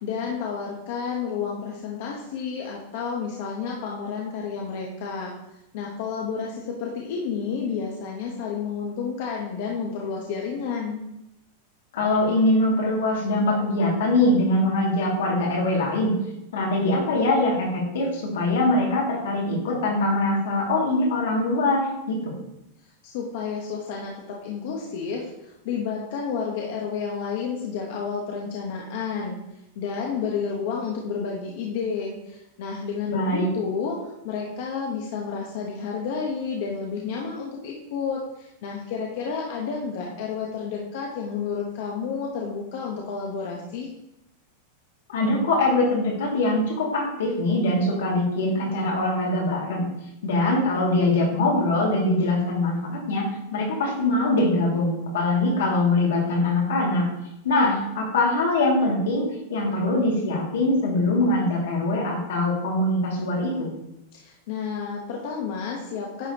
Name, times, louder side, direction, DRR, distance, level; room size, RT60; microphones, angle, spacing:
voice 1, 0.0-5.3 5.7-11.1 23.0-29.4 29.7-43.9 64.1-66.3, left 6 dB, 55° left, -1 dB, 1.0 m, -31 dB
voice 2, 11.9-16.1 16.5-22.3 33.1-33.5 45.1-49.9 50.2-57.0 57.4-63.7, left 2 dB, 90° left, -2 dB, 2.4 m, -23 dB
9.6 x 4.9 x 3.0 m, 0.86 s
supercardioid pair, 160°, 0 cm